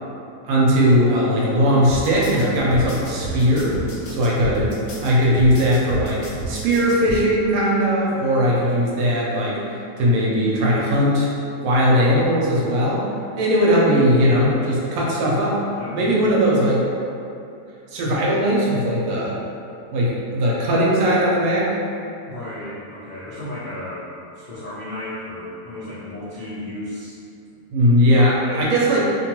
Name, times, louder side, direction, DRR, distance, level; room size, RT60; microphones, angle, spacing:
voice 1, 0.4-3.8 4.1-4.7 5.0-11.3 11.6-13.0 13.4-15.6 15.9-16.8 17.9-19.4 19.9-21.7 27.7-29.0, equal, 70° right, -5 dB, 1.0 m, -19 dB
sound 1, 1.9-7.2, right 2 dB, 80° left, 1.1 m, -31 dB
voice 2, 3.8-4.1 15.8-16.3 18.1-18.2 22.2-24.1 24.3-27.2 27.5-27.6 28.1-28.8, left 1 dB, 60° left, -13 dB, 0.5 m, -34 dB
2.8 x 2.2 x 2.9 m, 2.6 s
omnidirectional pair, 1.7 m